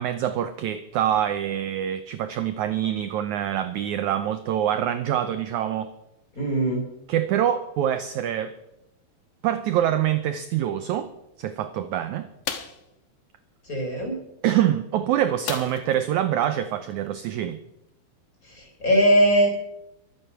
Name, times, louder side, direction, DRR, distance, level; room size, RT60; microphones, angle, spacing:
voice 1, 0.0-5.9 7.1-8.5 9.4-11.1 11.4-12.3 14.4-17.6, right 11 dB, 75° right, 11 dB, 1.8 m, -25 dB
voice 2, 6.3-6.8 13.6-14.2 18.4-19.5, equal, 20° left, 2 dB, 4.6 m, -21 dB
sound 1, 12.4-12.9 15.5-16.0 16.4-16.5 16.9-17.1, left 8 dB, 65° left, 2.7 m, -33 dB
23.0 x 9.7 x 6.0 m, 0.85 s
omnidirectional pair, 4.2 m